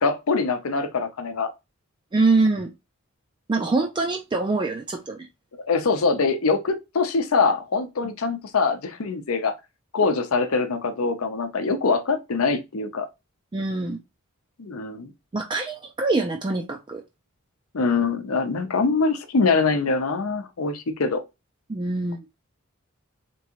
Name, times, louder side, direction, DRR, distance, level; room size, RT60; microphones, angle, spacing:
voice 1, 0.0-1.5 5.6-9.5 9.9-13.1 14.6-15.1 17.7-21.2, left 4 dB, 85° left, 0.6 m, -23 dB
voice 2, 2.1-2.7 3.5-5.3 13.5-14.0 15.3-17.0 21.7-22.2, right 3 dB, 20° right, 0.3 m, -24 dB
3.5 x 3.0 x 2.9 m
head